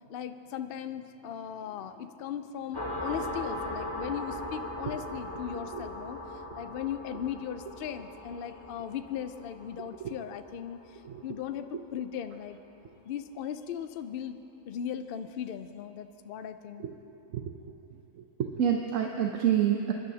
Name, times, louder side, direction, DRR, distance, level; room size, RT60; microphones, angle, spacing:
voice 1, 0.1-6.2 6.6-12.6 13.1-14.4 14.7-16.9, left 9 dB, 80° left, 9 dB, 0.5 m, -38 dB
sound 1, 2.7-12.0, left 1 dB, 20° left, 1.0 m, -39 dB
voice 2, 17.3-17.7 18.5-19.9, right 9 dB, 70° right, 2 dB, 1.0 m, -28 dB
23.5 x 11.0 x 2.8 m, 2.9 s
omnidirectional pair, 1.5 m